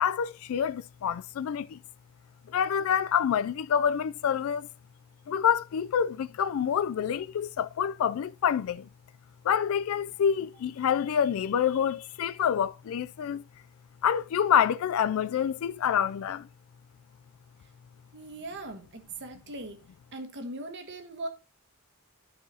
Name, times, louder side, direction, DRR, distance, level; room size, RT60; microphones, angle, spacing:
voice 1, 0.0-1.8 2.5-4.7 5.3-8.9 9.4-13.4 14.0-16.5, left 8 dB, 70° left, 0.3 m, -27 dB
voice 2, 18.1-19.8 20.1-21.3, right 2 dB, 55° right, 1.3 m, -39 dB
12.5 x 4.8 x 2.8 m
head